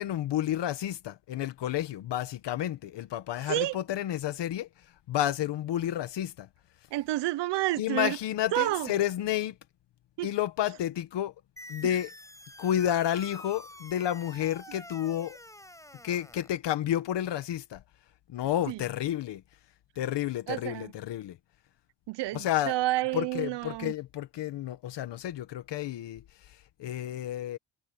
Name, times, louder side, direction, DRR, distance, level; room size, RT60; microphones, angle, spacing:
voice 1, 0.0-6.5 7.8-9.6 10.2-11.3 11.7-12.1 12.6-15.4 16.0-17.8 18.3-19.4 20.0-21.4 22.3-22.8 23.1-27.6, left 11 dB, 85° left, 1.3 m, -31 dB
voice 2, 6.9-8.2 8.5-8.9 10.2-10.3 18.7-18.8 20.5-20.9 22.1-23.9, right 17 dB, 90° right, 0.7 m, -29 dB
sound 1, 11.6-16.6, left 1 dB, 10° left, 5.6 m, -47 dB
cardioid pair, 65°, 41 cm